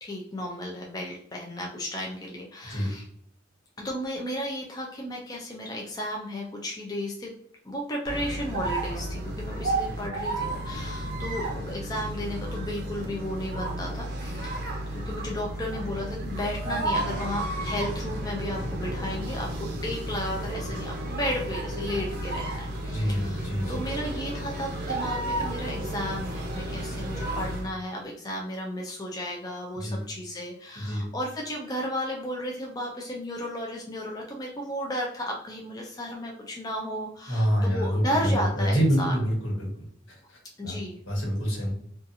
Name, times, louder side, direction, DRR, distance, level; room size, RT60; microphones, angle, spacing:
voice 1, 0.0-3.0 3.8-7.3 7.6-39.1 40.6-41.0, equal, 20° left, -1 dB, 0.3 m, -34 dB
sound 1, 8.0-27.7, right 1 dB, 50° right, 0.5 m, -32 dB
voice 2, 22.9-23.8 29.7-30.0 30.7-31.0 37.3-39.7 40.3-40.7 41.1-41.7, equal, 80° left, -3 dB, 1.2 m, -26 dB
2.7 x 2.3 x 2.5 m, 0.67 s
head